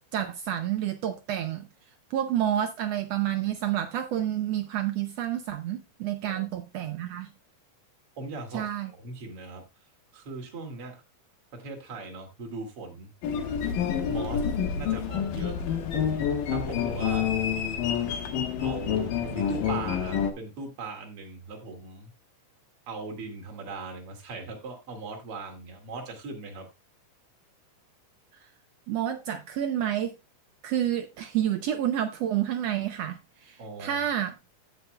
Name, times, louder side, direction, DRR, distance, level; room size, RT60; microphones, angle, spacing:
voice 1, 0.0-1.7 2.1-7.3 8.5-8.9 28.9-30.1 30.6-34.3, right 11 dB, 80° right, 1.4 m, -29 dB
voice 2, 8.2-9.6 10.1-11.0 11.5-13.1 14.1-14.4 14.7-17.3 18.6-22.1 22.9-26.7 33.6-34.1, right 3 dB, 45° right, 3.0 m, -39 dB
sound 1, 13.2-20.3, left 8 dB, 85° left, 3.1 m, -28 dB
15.5 x 6.4 x 2.2 m
omnidirectional pair, 3.8 m